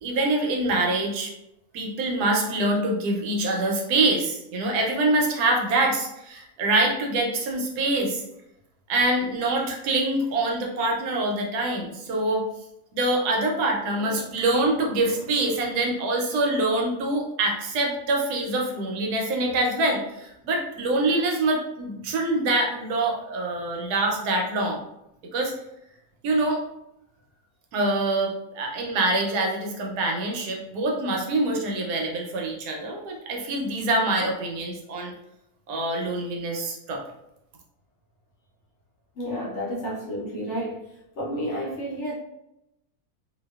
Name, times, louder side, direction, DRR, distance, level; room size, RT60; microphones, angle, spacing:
voice 1, 0.0-1.3 1.7-8.2 8.9-12.5 12.9-24.8 25.3-25.5 26.2-26.6 27.7-35.1 35.7-37.0, right 2 dB, 90° right, 0 dB, 1.2 m, -25 dB
voice 2, 39.2-40.9 41.2-42.1, equal, 60° left, -5 dB, 0.8 m, -30 dB
2.7 x 2.2 x 2.3 m, 0.84 s
omnidirectional pair, 1.6 m